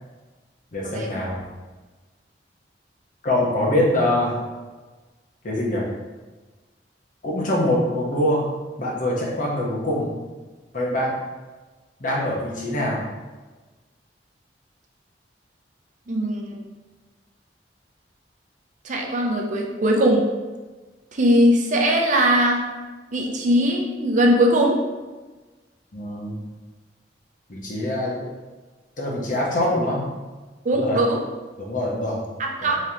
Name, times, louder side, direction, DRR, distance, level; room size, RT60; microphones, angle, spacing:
voice 1, 0.7-1.4 3.2-4.4 5.4-5.8 7.2-8.5 8.8-10.1 10.7-11.2 12.0-13.0 25.9-26.3 27.5-28.2 29.0-30.0 30.7-31.0 31.6-32.2 32.6-32.7, left 1 dB, 50° left, -3 dB, 0.9 m, -24 dB
voice 2, 16.1-16.6 18.8-20.2 21.1-22.6 23.1-24.8 30.6-31.2 32.4-32.8, equal, 45° right, 1 dB, 0.5 m, -20 dB
3.7 x 3.2 x 2.8 m, 1.3 s
head